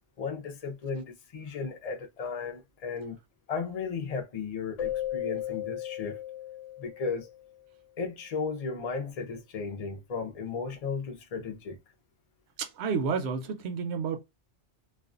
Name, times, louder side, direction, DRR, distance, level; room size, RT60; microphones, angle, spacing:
voice 1, 0.2-3.2 3.5-6.2 6.8-7.3 8.0-11.8, left 5 dB, 50° left, 0.5 m, -35 dB
Keyboard (musical), 4.8-7.5, left 12 dB, 80° left, 0.9 m, -36 dB
voice 2, 12.6-14.2, right 5 dB, 65° right, 0.8 m, -30 dB
2.4 x 2.2 x 2.4 m
omnidirectional pair, 1.2 m